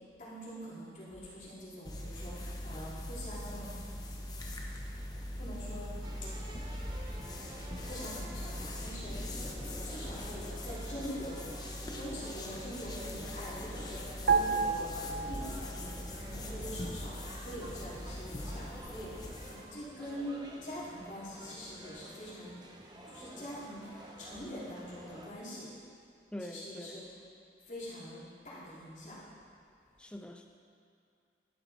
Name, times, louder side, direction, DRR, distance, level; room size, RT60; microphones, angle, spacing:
voice 1, 0.2-3.7 5.3-6.0 7.5-9.3 9.8-11.6 12.0-22.5 23.0-25.7 26.4-27.2 27.6-29.2, equal, 45° left, -8 dB, 2.6 m, -44 dB
sound 1, 1.9-19.7, left 1 dB, 25° left, 0.8 m, -41 dB
sound 2, 6.0-25.3, right 1 dB, 25° right, 0.8 m, -49 dB
sound 3, 14.3-15.9 16.2-16.4, right 5 dB, 65° right, 0.6 m, -30 dB
voice 2, 26.3-27.0 30.0-30.5, left 1 dB, 5° left, 4 dB, 0.3 m, -44 dB
11.5 x 7.2 x 4.0 m, 2.4 s
head